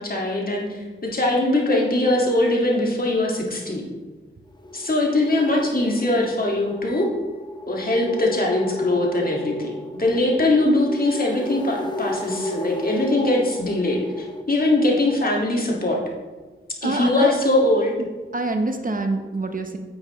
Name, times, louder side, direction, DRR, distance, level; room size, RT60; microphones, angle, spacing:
voice 1, 0.0-3.8 4.7-7.1 7.7-16.0 16.8-17.9, left 1 dB, 45° left, -1 dB, 2.0 m, -21 dB
sound 1, 4.5-14.4, left 1 dB, 20° left, 0.9 m, -34 dB
voice 2, 16.8-17.3 18.0-19.8, right 2 dB, 40° right, 6 dB, 0.8 m, -26 dB
9.5 x 7.8 x 3.2 m, 1.3 s
cardioid pair, 65°, 21 cm